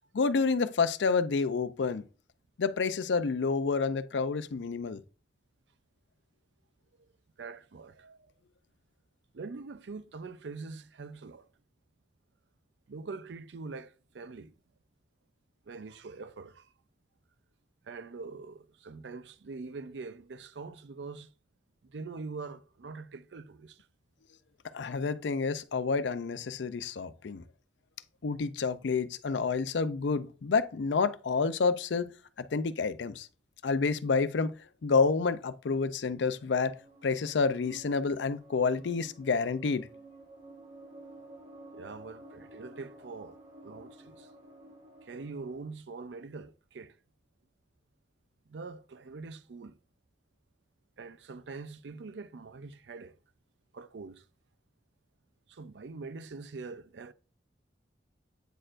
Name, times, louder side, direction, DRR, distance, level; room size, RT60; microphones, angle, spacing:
voice 1, 0.1-2.0 2.6-5.0 24.7-27.4 28.2-32.1 32.4-33.3 33.6-34.5 34.8-36.7 37.0-39.9, left 4 dB, 80° left, 0.5 m, -29 dB
voice 2, 7.4-8.3 9.3-11.5 12.9-14.5 15.7-16.7 17.8-21.3 21.8-23.9 41.7-43.4 43.6-44.3 44.6-44.7 45.0-47.0 48.5-49.8 51.0-53.1 53.7-54.3 55.5-57.1, right 4 dB, 75° right, 0.5 m, -44 dB
sound 1, 36.2-45.6, right 2 dB, 45° right, 1.5 m, -52 dB
9.0 x 4.3 x 2.5 m
head